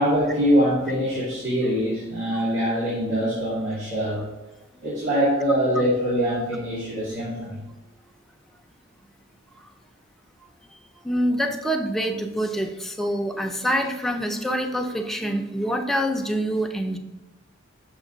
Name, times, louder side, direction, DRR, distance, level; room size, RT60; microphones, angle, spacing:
voice 1, 0.0-4.3 4.8-7.6, equal, 75° right, -10 dB, 2.5 m, -23 dB
voice 2, 11.0-17.0, equal, ahead, 3 dB, 0.6 m, -26 dB
6.2 x 6.1 x 3.9 m, 1.1 s
head